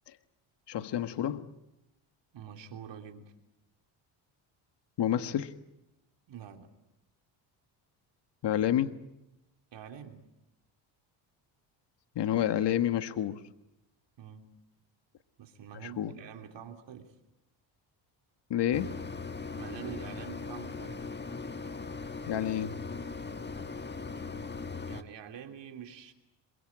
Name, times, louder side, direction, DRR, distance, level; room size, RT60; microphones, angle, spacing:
voice 1, 0.7-1.4 5.0-5.5 8.4-9.0 12.1-13.4 15.8-16.1 18.5-19.0 22.3-22.7, left 11 dB, 55° left, 1.5 m, -29 dB
voice 2, 2.3-3.3 6.3-6.7 9.7-10.3 14.2-14.5 15.4-17.1 19.6-21.1 24.9-26.1, right 8 dB, 60° right, 3.2 m, -46 dB
Mechanisms, 18.7-25.0, left 4 dB, 20° left, 1.5 m, -39 dB
27.0 x 23.5 x 8.8 m
supercardioid pair, 80°, 48 cm